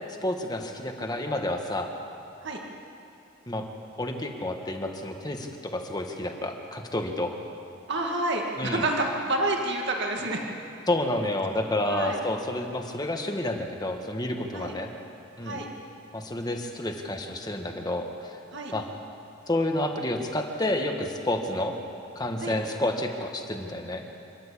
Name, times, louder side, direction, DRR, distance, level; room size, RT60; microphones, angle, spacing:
voice 1, 0.2-1.9 3.5-3.7 4.0-7.3 8.6-8.8 10.9-14.9 15.4-15.6 16.1-18.4 18.7-18.8 19.5-21.7 22.1-24.0, left 1 dB, 20° left, 3 dB, 1.6 m, -29 dB
voice 2, 7.9-10.4 11.8-12.2 14.5-14.7 15.4-15.7 18.5-18.7 22.4-22.6, right 2 dB, 60° right, 1 dB, 2.1 m, -28 dB
27.0 x 12.5 x 8.5 m, 2.7 s
head